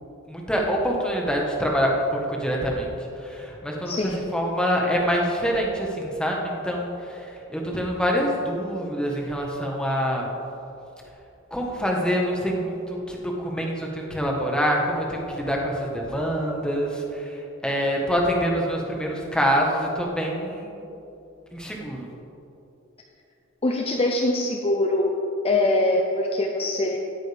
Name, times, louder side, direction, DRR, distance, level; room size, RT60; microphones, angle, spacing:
voice 1, 0.3-10.3 11.5-20.9 21.5-22.1, equal, 5° left, -1 dB, 1.4 m, -26 dB
voice 2, 3.9-4.2 23.6-25.1 25.4-27.0, left 2 dB, 30° left, 2 dB, 0.7 m, -23 dB
16.5 x 9.1 x 3.5 m, 2.9 s
head